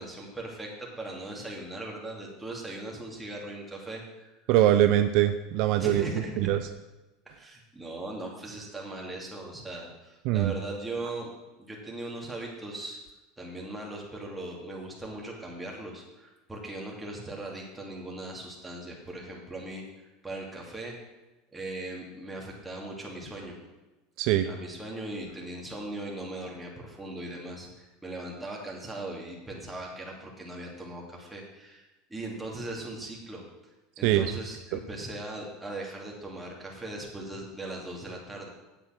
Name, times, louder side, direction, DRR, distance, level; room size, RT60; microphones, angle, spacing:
voice 1, 0.0-4.3 5.8-6.5 7.2-11.3 11.6-13.0 13.4-19.9 20.2-21.0 21.5-23.6 24.5-38.5, right 2 dB, 10° right, -2 dB, 2.9 m, -39 dB
voice 2, 4.5-6.1 6.4-6.7 10.2-10.5 24.2-24.5 34.0-34.3 34.7-34.8, right 12 dB, 60° right, 9 dB, 0.6 m, -23 dB
9.2 x 8.0 x 6.0 m, 1.1 s
supercardioid pair, 115°, 0 cm